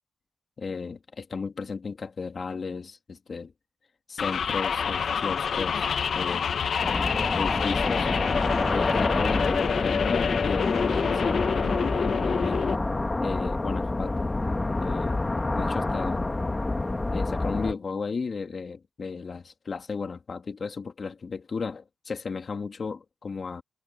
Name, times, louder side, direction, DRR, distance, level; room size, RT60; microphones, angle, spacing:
voice 1, 0.6-3.5 4.1-6.5 7.4-8.4 8.7-12.6 13.2-14.3 14.8-15.2 15.5-16.2 17.1-23.6, left 5 dB, 50° left, 2.2 m, -34 dB
sound 1, 4.2-12.8, left 6 dB, 70° left, 1.0 m, -27 dB
sound 2, 6.8-17.7, left 2 dB, 20° left, 1.8 m, -28 dB
wide cardioid pair, 120°, 0 cm